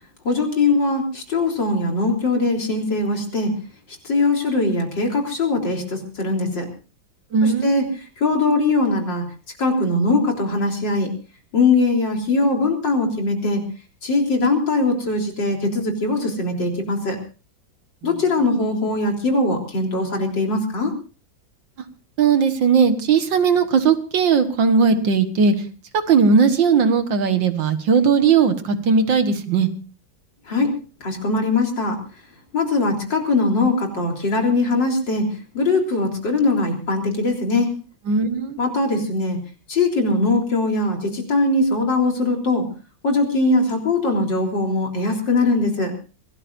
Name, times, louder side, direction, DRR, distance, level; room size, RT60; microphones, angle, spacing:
voice 1, 0.2-3.6 4.0-6.7 7.4-7.9 8.2-9.2 9.6-11.1 11.5-13.7 14.0-17.2 18.0-20.9 30.5-32.0 32.5-37.7 38.6-39.4 39.7-42.7 43.0-45.9, left 3 dB, 65° left, 2 dB, 4.4 m, -21 dB
voice 2, 7.3-7.8 22.2-25.5 26.1-29.7 38.1-38.6, right 5 dB, 70° right, 9 dB, 2.2 m, -18 dB
25.5 x 18.0 x 2.6 m, 0.35 s
omnidirectional pair, 2.1 m